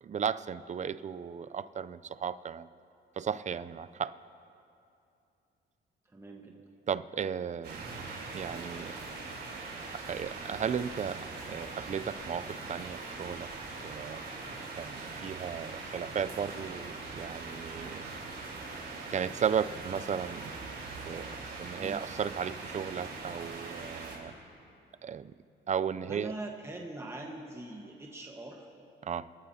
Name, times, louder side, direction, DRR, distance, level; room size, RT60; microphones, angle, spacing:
voice 1, 0.0-2.7 3.2-4.2 6.9-7.8 8.3-8.9 9.9-13.5 13.8-14.2 14.7-18.1 19.1-20.5 21.0-24.3 25.0-25.3 25.7-26.3 29.0-29.3, right 7 dB, 35° right, 14 dB, 0.5 m, -35 dB
voice 2, 6.1-6.6 21.7-22.0 26.0-28.7, right 2 dB, 15° right, 0 dB, 1.3 m, -43 dB
sound 1, 7.6-24.2, right 3 dB, 55° right, 3.8 m, -42 dB
26.5 x 13.5 x 2.8 m, 2.6 s
cardioid pair, 90°, 20 cm